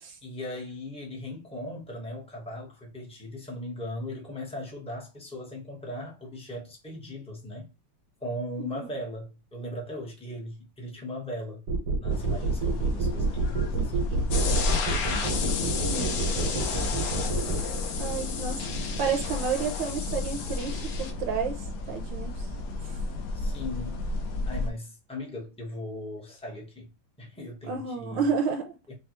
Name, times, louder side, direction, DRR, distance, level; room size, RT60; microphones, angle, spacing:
voice 1, 0.2-7.7 8.2-11.6 12.0-15.0 23.3-24.0 24.5-26.9 27.2-28.3 28.9-29.0, left 1 dB, 10° left, 0.4 m, -38 dB
sound 1, 11.7-17.6, right 3 dB, 90° right, 1.9 m, -28 dB
sound 2, 12.1-24.7, left 2 dB, 60° left, 1.2 m, -33 dB
sound 3, 14.3-21.1, left 6 dB, 80° left, 1.7 m, -33 dB
voice 2, 15.7-16.2 18.0-18.6 19.0-22.5 27.7-28.7, right 6 dB, 70° right, 1.2 m, -31 dB
5.4 x 2.3 x 3.0 m
omnidirectional pair, 2.4 m